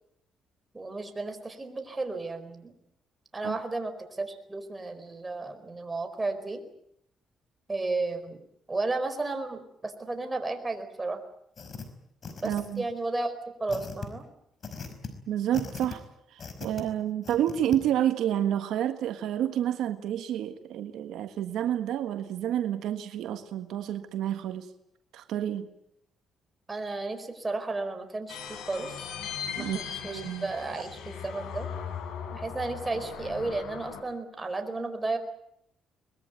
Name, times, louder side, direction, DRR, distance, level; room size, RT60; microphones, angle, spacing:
voice 1, 0.7-2.7 3.3-6.6 7.7-8.4 8.7-11.2 12.4-14.2 26.7-29.0 29.5-31.7 32.3-35.2, right 3 dB, 20° right, 7 dB, 4.6 m, -33 dB
sound 1, 11.6-11.8 12.2-12.9 13.7-14.1 14.6-15.1 15.5-16.0 16.4-16.8 17.2-17.8, left 5 dB, 45° left, 5.1 m, -39 dB
voice 2, 12.4-12.8 15.3-16.1 16.3-24.7 25.1-25.7 29.6-29.8 30.0-30.5, right 11 dB, 80° right, 8 dB, 1.6 m, -29 dB
sound 2, 28.3-34.0, left 7 dB, 85° left, 5.1 m, -38 dB
23.0 x 21.5 x 9.3 m, 0.74 s
cardioid pair, 90°, 0 cm